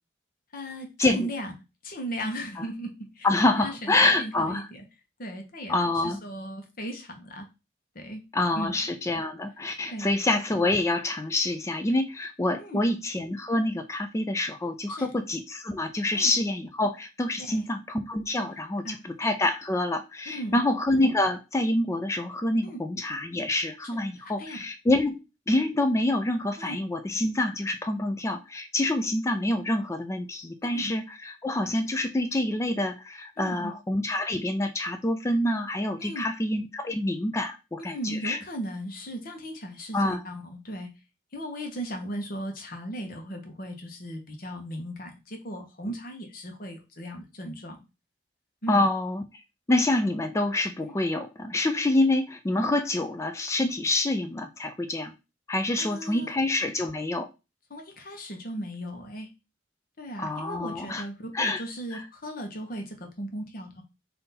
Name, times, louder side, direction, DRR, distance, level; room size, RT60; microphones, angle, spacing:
voice 1, 0.5-1.5 1.8-4.8 5.2-7.5 7.9-8.2 8.5-8.8 9.9-10.1 12.6-12.8 14.9-15.1 16.1-16.3 17.5-17.7 18.8-18.9 20.3-20.6 22.6-22.8 23.9-24.7 26.6-26.8 30.7-30.9 33.4-33.7 36.0-36.2 37.8-40.9 41.3-47.8 48.6-48.9 50.8-50.9 55.8-56.3 57.7-59.3 60.0-63.8, equal, 50° left, 4 dB, 1.0 m, -37 dB
voice 2, 3.2-4.7 5.7-6.2 8.3-25.2 25.5-38.4 39.9-40.2 48.7-49.2 49.7-55.1 55.5-57.3 60.2-61.0 61.3-61.6 61.9-62.0, left 2 dB, 15° left, 8 dB, 0.3 m, -27 dB
3.7 x 2.7 x 4.1 m, 0.27 s
head